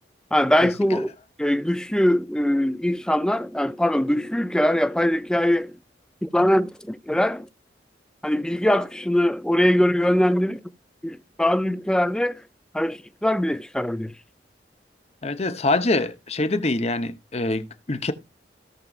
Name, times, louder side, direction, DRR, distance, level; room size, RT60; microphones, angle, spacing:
voice 1, 0.3-1.1 1.4-5.8 6.2-7.5 8.2-10.6 11.0-12.4 12.7-14.1, left 1 dB, 5° left, 0.4 m, -22 dB
voice 2, 15.2-18.1, left 2 dB, 35° left, 0.8 m, -24 dB
17.0 x 5.9 x 2.5 m
head